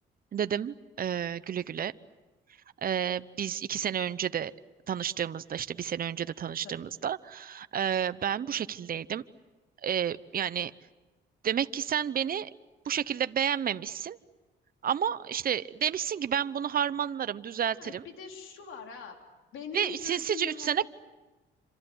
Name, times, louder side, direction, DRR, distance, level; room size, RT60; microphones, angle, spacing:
voice 1, 0.3-1.9 2.8-4.5 4.9-9.2 9.8-10.7 11.4-12.5 12.8-14.2 14.8-18.0 19.7-20.9, right 9 dB, 45° right, 13 dB, 0.9 m, -30 dB
voice 2, 17.7-19.2 19.5-20.9, left 5 dB, 85° left, 3 dB, 4.0 m, -42 dB
28.0 x 26.5 x 8.1 m, 1.2 s
cardioid pair, 90°, 20 cm